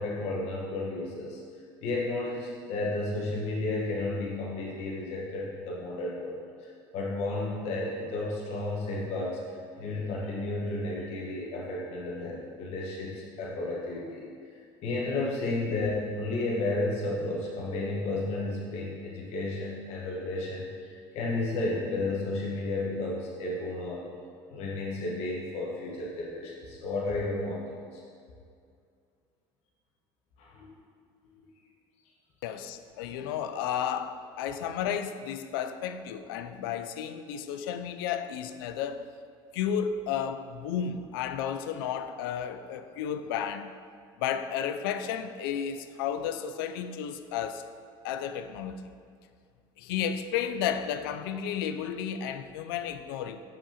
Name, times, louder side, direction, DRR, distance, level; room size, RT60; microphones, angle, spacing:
voice 1, 0.0-1.4 1.8-6.4 6.6-9.4 9.8-14.3 14.8-24.0 24.5-28.0 30.4-30.8, left 2 dB, 65° left, 1.2 m, -32 dB
voice 2, 32.4-39.0 39.5-43.7 44.2-47.6 48.0-48.8 49.8-53.4, left 8 dB, 90° left, 0.4 m, -32 dB
7.0 x 5.6 x 2.9 m
supercardioid pair, 90°, 12 cm